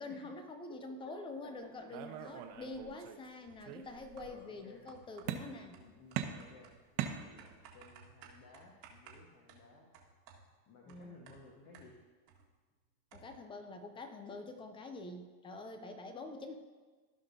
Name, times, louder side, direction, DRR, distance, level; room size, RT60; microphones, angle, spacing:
voice 1, 0.0-5.8 10.9-11.2 13.1-16.5, left 2 dB, 15° left, 7 dB, 0.3 m, -46 dB
voice 2, 0.7-1.2 1.4-1.7 2.0-2.2 2.7-3.0 4.2-4.9 5.4-9.9 10.7-12.0, left 4 dB, 40° left, -2 dB, 1.4 m, -58 dB
sound 1, 1.9-3.3 3.6-4.3 5.3-5.8 6.2-7.8, right 10 dB, 65° right, 1.1 m, -41 dB
sound 2, 3.4-3.7 4.2-4.5 4.9-12.5 12.7-12.8 13.1-13.5, right 6 dB, 85° right, 1.8 m, -59 dB
16.0 x 5.4 x 2.7 m, 1.4 s
supercardioid pair, 120°, 48 cm